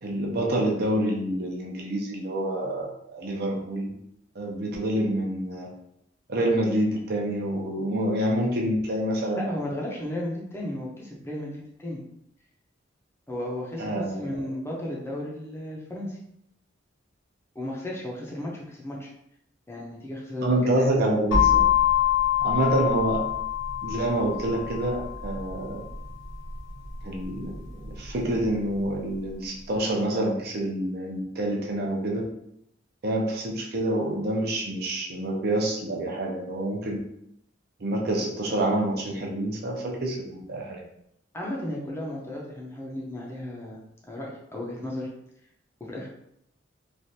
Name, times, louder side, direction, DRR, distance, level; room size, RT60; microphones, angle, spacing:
voice 1, 0.0-3.9 4.3-5.7 6.3-9.5 13.8-14.5 20.4-21.6 22.4-23.2 23.8-25.8 27.0-32.2 33.0-37.0 37.8-40.8, right 1 dB, 55° right, -1 dB, 0.6 m, -27 dB
voice 2, 9.4-11.5 11.8-12.0 13.3-16.2 17.5-19.1 19.7-20.9 41.3-43.8 44.1-45.1 45.8-46.1, left 1 dB, 15° left, -3 dB, 0.6 m, -34 dB
sound 1, 21.3-29.1, left 9 dB, 80° left, 1.2 m, -26 dB
3.2 x 2.4 x 2.7 m, 0.77 s
head